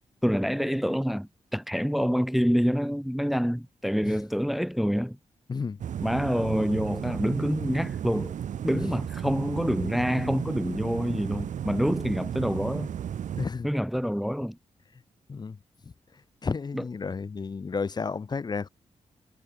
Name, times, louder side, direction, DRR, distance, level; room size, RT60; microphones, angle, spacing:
voice 1, 0.2-5.2 6.0-8.3 8.6-12.9 13.6-14.6 16.7-16.8, equal, ahead, 0.9 m, -27 dB
sound 1, 5.8-13.5, right 9 dB, 80° right, 1.6 m, -34 dB
voice 2, 13.4-13.7 15.3-15.6 15.8-15.9 16.4-18.7, left 5 dB, 35° left, 1.2 m, -32 dB
wide cardioid pair, 145°, 13 cm